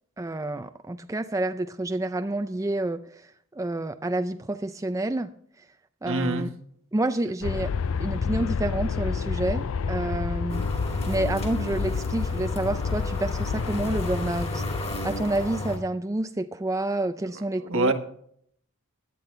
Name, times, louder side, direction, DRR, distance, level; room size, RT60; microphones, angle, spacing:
voice 1, 0.2-5.3 5.6-5.7 6.0-6.5 6.9-7.7 8.0-10.6 11.1-14.6 15.0-17.9, right 2 dB, 15° right, 9 dB, 0.5 m, -29 dB
voice 2, 6.0-6.5 17.6-17.9, right 2 dB, 65° right, 8 dB, 1.5 m, -25 dB
Aircraft, 7.4-15.8, left 5 dB, 65° left, 0.5 m, -29 dB
sound 1, 10.5-15.8, left 1 dB, 30° left, 2.5 m, -34 dB
17.0 x 10.5 x 3.3 m, 0.65 s
head